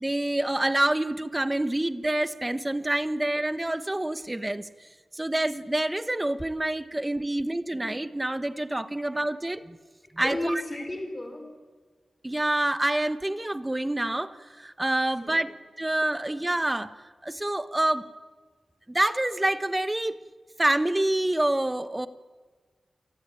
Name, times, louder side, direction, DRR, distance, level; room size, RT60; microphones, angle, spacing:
voice 1, 0.0-4.7 5.1-9.8 10.1-10.6 12.2-15.5 15.8-16.9 17.2-18.0 18.9-20.2 20.6-22.1, right 1 dB, 15° right, 13 dB, 1.1 m, -27 dB
voice 2, 10.0-11.5 15.1-15.6, left 1 dB, 20° left, 6 dB, 4.5 m, -34 dB
29.0 x 18.5 x 9.0 m, 1.4 s
wide cardioid pair, 145°, 0 cm